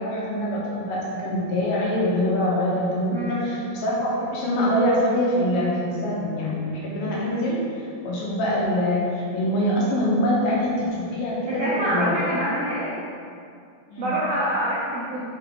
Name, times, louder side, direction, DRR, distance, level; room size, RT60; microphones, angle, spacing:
voice 1, 0.0-12.1 13.9-14.1, equal, 80° left, -5 dB, 2.8 m, -24 dB
voice 2, 3.1-3.4 11.5-12.9 14.0-15.2, equal, 75° right, -8 dB, 1.5 m, -26 dB
5.8 x 5.1 x 3.6 m, 2.4 s
omnidirectional pair, 4.0 m